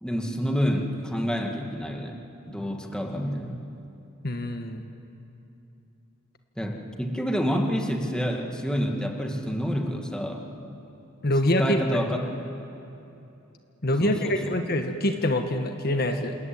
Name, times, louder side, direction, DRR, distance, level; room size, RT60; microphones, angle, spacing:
voice 1, 0.0-2.2 2.5-3.6 6.6-10.4 11.6-12.2 14.0-14.5, equal, 5° left, 2 dB, 2.2 m, -28 dB
voice 2, 4.2-4.8 11.2-12.0 13.8-16.4, left 1 dB, 50° left, 5 dB, 1.5 m, -25 dB
28.0 x 20.5 x 9.3 m, 2.9 s
head